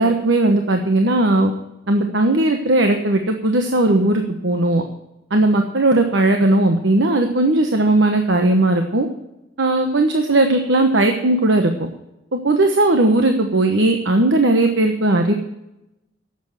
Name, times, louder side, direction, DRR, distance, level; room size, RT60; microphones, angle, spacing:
voice 1, 0.0-1.5 1.9-4.8 5.3-9.1 9.6-11.9 12.3-15.3, right 2 dB, 75° right, 5 dB, 1.2 m, -17 dB
11.5 x 8.2 x 7.8 m, 0.90 s
head